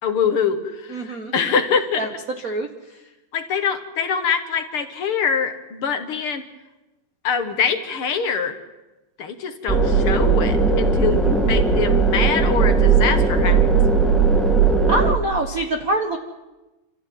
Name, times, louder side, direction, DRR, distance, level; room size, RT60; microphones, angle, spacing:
voice 1, 0.0-2.1 3.3-6.4 7.2-8.6 9.2-13.6, left 6 dB, 50° left, 7 dB, 2.2 m, -24 dB
voice 2, 0.9-1.3 2.0-2.1 2.4-2.7 14.9-16.2, right 1 dB, 45° right, 4 dB, 1.1 m, -24 dB
sound 1, 9.7-15.1, right 5 dB, ahead, 0.9 m, -17 dB
27.0 x 14.5 x 9.3 m, 1.1 s
omnidirectional pair, 3.4 m